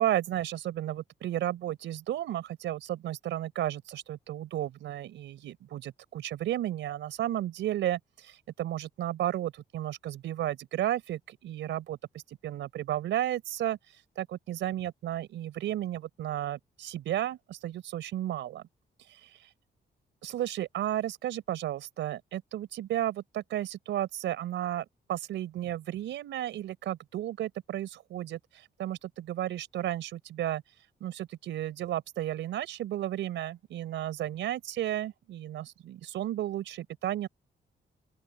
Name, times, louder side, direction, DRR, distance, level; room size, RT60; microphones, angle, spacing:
voice 1, 0.0-13.8 14.2-18.6 19.1-19.5 20.2-30.6 31.0-37.3, right 12 dB, 90° right, 4.5 m, -33 dB
open air
cardioid pair, 80°, 19 cm